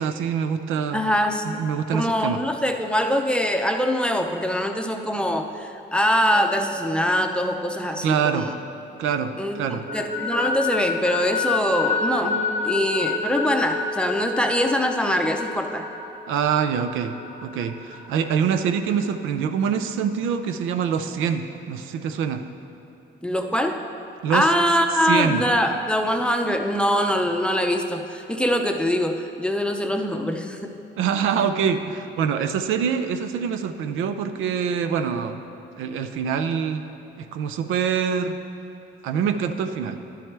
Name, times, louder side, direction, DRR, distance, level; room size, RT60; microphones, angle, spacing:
voice 1, 0.0-1.0 1.4-2.4 8.0-8.5 9.0-9.3 9.6-9.8 16.3-17.1 17.4-22.4 24.2-24.5 25.0-25.4 31.0-35.4 35.8-36.8 37.2-38.3 39.0-40.0, right 7 dB, 85° right, 8 dB, 0.5 m, -25 dB
voice 2, 0.9-1.5 1.9-8.6 9.4-15.9 23.2-23.8 24.3-30.7, equal, 5° left, 4 dB, 0.6 m, -23 dB
sound 1, 6.1-9.0 9.3-18.8, left 3 dB, 35° right, 1.5 m, -30 dB
11.0 x 7.6 x 3.3 m, 3.0 s
cardioid pair, 90°, 20 cm